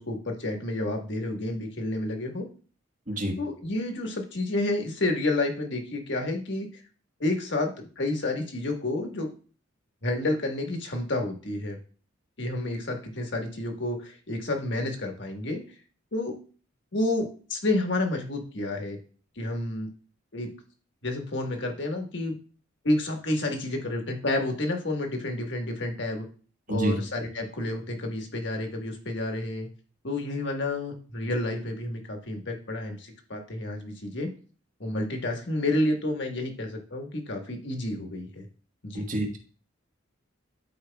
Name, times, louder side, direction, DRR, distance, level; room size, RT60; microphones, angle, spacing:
voice 1, 0.0-2.4 3.4-6.8 7.2-9.3 10.0-11.8 12.4-15.6 16.1-16.3 16.9-19.0 19.4-19.9 20.3-20.5 21.0-22.4 22.8-26.2 26.7-29.7 30.0-34.3 34.8-38.5 38.8-39.1, left 2 dB, 60° left, 3 dB, 1.4 m, -30 dB
voice 2, 3.1-3.4 26.7-27.0 38.9-39.3, right 1 dB, 40° right, 2 dB, 1.4 m, -27 dB
12.0 x 4.7 x 2.3 m, 0.39 s
head